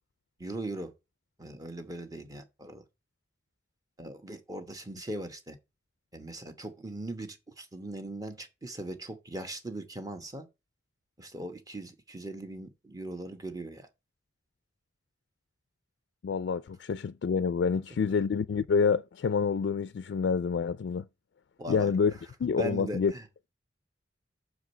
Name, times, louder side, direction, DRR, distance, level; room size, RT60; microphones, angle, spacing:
voice 1, 0.4-0.9 1.4-2.8 4.0-5.6 6.1-10.5 11.2-13.9 21.6-21.9 22.6-23.5, right 1 dB, 20° right, 1.1 m, -39 dB
voice 2, 16.2-21.1 21.7-22.1 22.4-23.1, left 5 dB, 80° left, 0.4 m, -27 dB
6.2 x 4.8 x 6.7 m
head